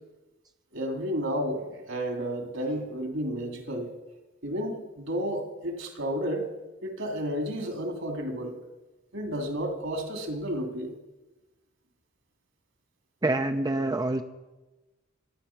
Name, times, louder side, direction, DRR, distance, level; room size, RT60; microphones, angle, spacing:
voice 1, 0.7-3.9 4.4-6.5 6.8-8.6 9.1-10.9, equal, 70° right, 4 dB, 2.8 m, -31 dB
voice 2, 13.2-14.2, right 2 dB, 20° right, 7 dB, 0.6 m, -26 dB
24.0 x 9.5 x 5.9 m, 1.1 s
head